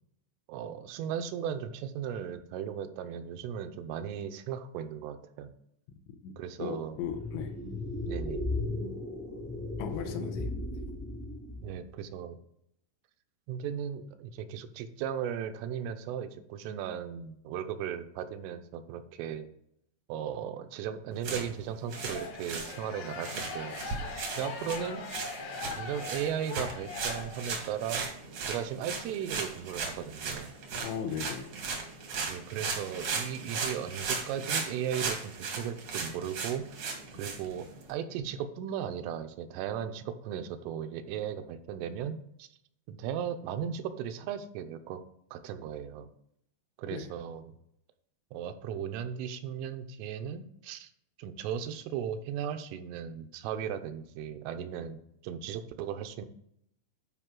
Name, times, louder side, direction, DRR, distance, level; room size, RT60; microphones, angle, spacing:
voice 1, 0.5-5.5 6.4-7.0 8.1-8.5 11.6-12.4 13.5-19.5 20.1-24.0 24.4-25.1 25.8-28.1 28.4-30.5 32.3-36.9 37.2-42.5 42.9-45.0 45.3-46.1 46.8-47.5 48.3-50.9 51.2-56.3, right 8 dB, 85° right, 8 dB, 3.2 m, -36 dB
voice 2, 6.6-7.5 9.8-10.5 30.8-31.5 46.9-47.1, left 7 dB, 80° left, 4 dB, 2.8 m, -36 dB
sound 1, 7.0-11.8, left 2 dB, 10° left, 0.8 m, -36 dB
sound 2, 21.1-37.9, right 4 dB, 70° right, 1.5 m, -37 dB
sound 3, 21.9-27.8, left 4 dB, 65° left, 2.4 m, -41 dB
11.0 x 4.9 x 3.7 m, 0.74 s
omnidirectional pair, 5.6 m